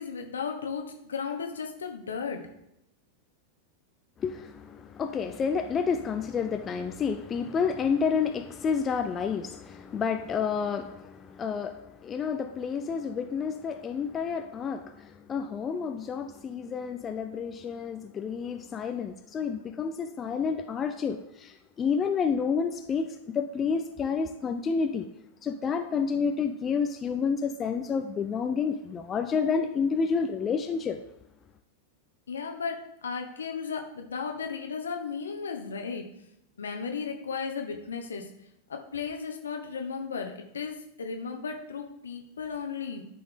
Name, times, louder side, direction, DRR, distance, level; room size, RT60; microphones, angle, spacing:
voice 1, 0.0-2.4 32.3-36.1 36.6-38.3 38.7-43.1, left 5 dB, 70° left, 1.1 m, -35 dB
voice 2, 4.2-23.1 23.3-25.1 25.4-31.0, left 6 dB, 25° left, 0.5 m, -29 dB
12.5 x 4.3 x 3.7 m
figure-of-eight pair, 90°, 0 cm